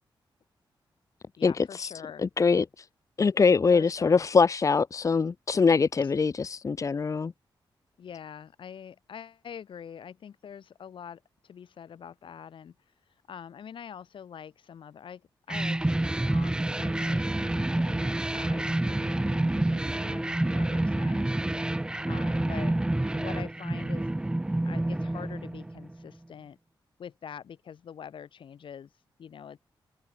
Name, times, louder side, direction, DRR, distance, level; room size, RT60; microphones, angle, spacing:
voice 1, 1.4-2.3 3.7-4.3 6.0-6.1 8.0-12.8 13.3-21.4 22.1-22.7 23.1-24.1 24.7-26.6 27.0-28.9 29.2-29.6, left 8 dB, 75° left, 7.1 m, -45 dB
voice 2, 2.4-2.8 3.2-7.3, left 5 dB, 40° left, 0.9 m, -23 dB
sound 1, 15.5-26.0, right 1 dB, 10° right, 0.5 m, -28 dB
wide cardioid pair, 120°, 9 cm